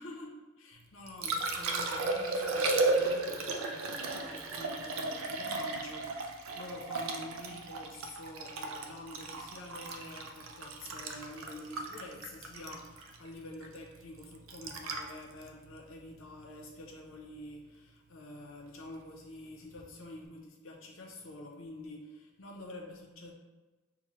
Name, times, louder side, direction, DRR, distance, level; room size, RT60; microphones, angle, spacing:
voice 1, 0.0-23.3, left 1 dB, 70° left, 0 dB, 0.7 m, -47 dB
Liquid, 0.8-16.9 19.7-19.8, right 3 dB, 75° right, 0.4 m, -35 dB
5.7 x 2.2 x 3.0 m, 1.2 s
head